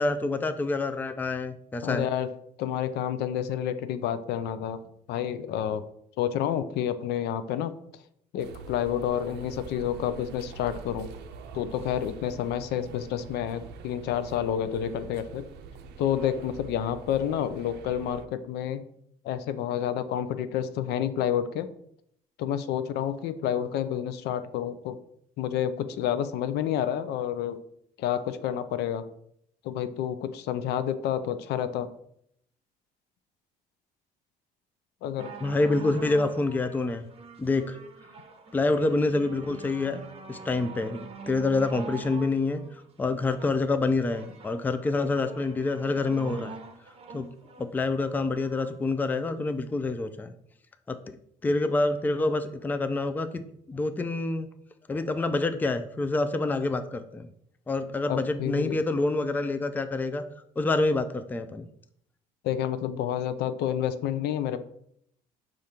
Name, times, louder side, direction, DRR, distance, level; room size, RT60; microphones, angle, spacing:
voice 1, 0.0-2.1 35.4-37.1 37.4-37.8 38.5-40.0 40.3-42.6 43.0-46.5 47.1-47.3 47.6-50.3 50.9-51.0 51.4-53.4 53.7-54.5 54.9-57.3 57.7-60.2 60.6-61.7, left 3 dB, 10° left, 9 dB, 0.3 m, -27 dB
voice 2, 1.8-2.3 2.6-4.8 5.1-5.8 6.2-7.7 8.3-11.1 11.5-15.5 16.0-18.8 19.2-21.7 22.4-25.0 25.4-27.6 28.0-29.0 29.6-31.9 35.0-35.3 58.1-58.8 62.4-64.6, left 10 dB, 75° left, 12 dB, 0.4 m, -29 dB
sound 1, 8.4-18.3, right 5 dB, 80° right, 0.5 m, -45 dB
sound 2, 35.2-48.7 49.5-49.6, right 4 dB, 35° right, 0.7 m, -45 dB
5.0 x 2.5 x 4.2 m, 0.70 s
cardioid pair, 110°, 17 cm